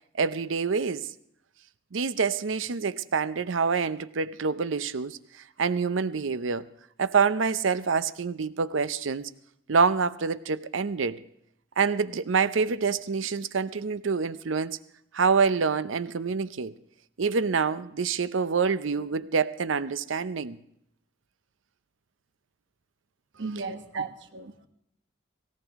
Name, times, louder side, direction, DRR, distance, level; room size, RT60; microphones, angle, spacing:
voice 1, 0.1-1.1 1.9-5.2 5.6-6.6 7.0-9.3 9.7-11.2 11.8-14.8 15.1-16.7 17.2-20.6, right 5 dB, 80° right, 0.6 m, -26 dB
voice 2, 23.3-24.7, right 4 dB, 65° right, 1.1 m, -35 dB
18.5 x 17.5 x 3.6 m
head